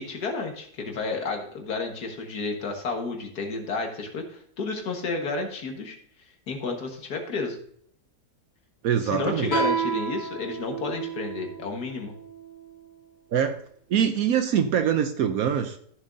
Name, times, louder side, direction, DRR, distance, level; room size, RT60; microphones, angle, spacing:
voice 1, 0.0-6.0 6.5-7.6 9.1-12.1, left 3 dB, 80° left, 3 dB, 2.0 m, -31 dB
voice 2, 8.8-9.6 13.3-13.6 13.9-15.8, right 8 dB, 70° right, 8 dB, 1.1 m, -24 dB
Guitar, 9.5-12.7, right 5 dB, 30° left, 3.5 m, -31 dB
14.0 x 7.1 x 2.6 m, 0.62 s
omnidirectional pair, 1.6 m